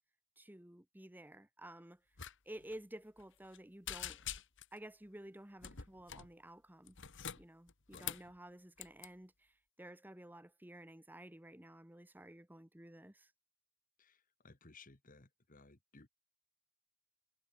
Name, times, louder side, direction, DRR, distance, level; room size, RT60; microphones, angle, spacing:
voice 1, 0.4-2.0 2.4-4.2 4.7-7.0 7.4-13.3, right 1 dB, 10° right, 1.1 m, -53 dB
sound 1, 2.2-2.3 2.6-2.8 3.2-3.6 3.9-4.8 5.6-6.3 6.9-8.3 8.8-9.1, left 9 dB, 55° left, 1.8 m, -45 dB
voice 2, 14.0-16.1, left 3 dB, 40° left, 1.9 m, -60 dB
head